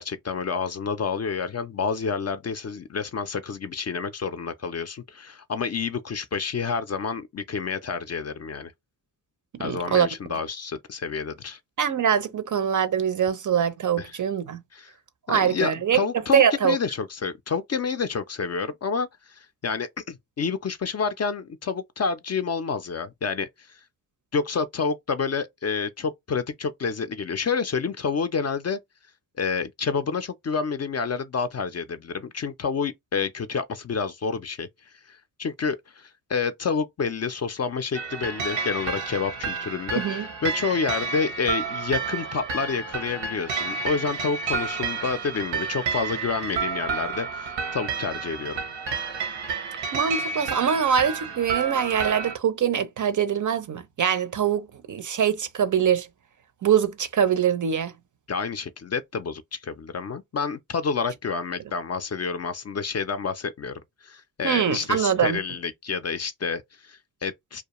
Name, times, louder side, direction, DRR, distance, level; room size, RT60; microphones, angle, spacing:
voice 1, 0.0-8.7 9.6-11.6 14.0-14.1 14.7-14.9 15.3-23.8 24.3-28.8 29.4-34.7 35.1-48.6 58.3-67.6, left 5 dB, 40° left, 0.4 m, -29 dB
voice 2, 9.6-10.1 11.8-14.6 15.3-16.0 16.3-16.8 39.9-40.3 49.9-56.1 56.6-57.9 64.4-65.4, right 8 dB, 45° right, 0.5 m, -23 dB
sound 1, 38.0-52.4, right 5 dB, 80° right, 0.7 m, -30 dB
2.3 x 2.2 x 2.9 m
supercardioid pair, 40°, 43 cm